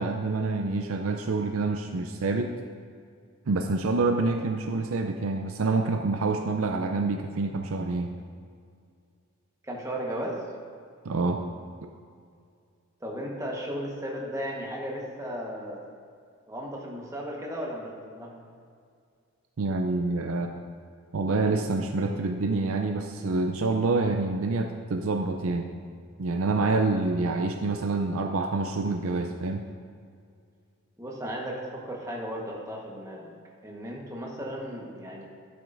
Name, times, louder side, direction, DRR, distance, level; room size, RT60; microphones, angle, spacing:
voice 1, 0.0-2.5 3.5-8.1 11.0-11.4 19.6-20.5 21.1-25.7 26.2-29.6, right 3 dB, 75° right, 4 dB, 0.5 m, -27 dB
voice 2, 9.6-10.4 13.0-15.8 16.5-18.3 31.0-33.3 33.6-35.3, equal, 15° right, -2 dB, 1.2 m, -35 dB
12.0 x 7.7 x 2.6 m, 2.3 s
head